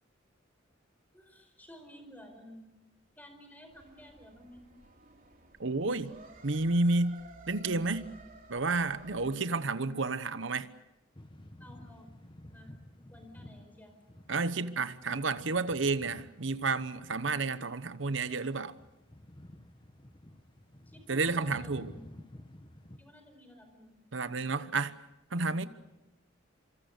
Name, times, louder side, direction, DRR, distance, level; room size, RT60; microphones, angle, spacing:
voice 1, 1.1-2.7 3.2-4.6 9.1-9.4 11.6-12.1 12.5-13.9 20.9-22.2 23.0-23.9, left 1 dB, 10° left, 4.8 m, -53 dB
sound 1, 3.7-9.4, right 2 dB, 45° right, 3.3 m, -55 dB
voice 2, 5.6-6.1 6.4-7.2 7.5-8.1 8.5-10.7 14.3-18.7 21.1-21.9 24.1-24.9 25.3-25.6, right 3 dB, 70° right, 1.0 m, -31 dB
sound 2, 11.1-23.0, left 1 dB, 25° left, 1.4 m, -52 dB
26.0 x 26.0 x 6.7 m
head